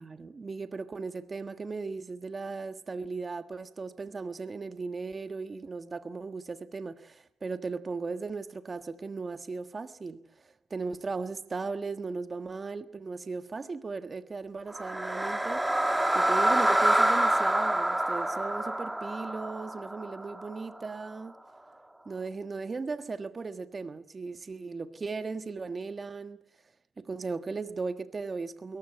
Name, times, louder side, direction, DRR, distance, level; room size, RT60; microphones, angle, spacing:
voice 1, 0.0-21.3 22.0-26.4 27.0-28.8, right 4 dB, 30° right, 1.5 m, -37 dB
sound 1, 14.7-20.9, right 1 dB, 10° right, 1.4 m, -27 dB
22.0 x 19.0 x 9.0 m
cardioid pair, 90°, 0 cm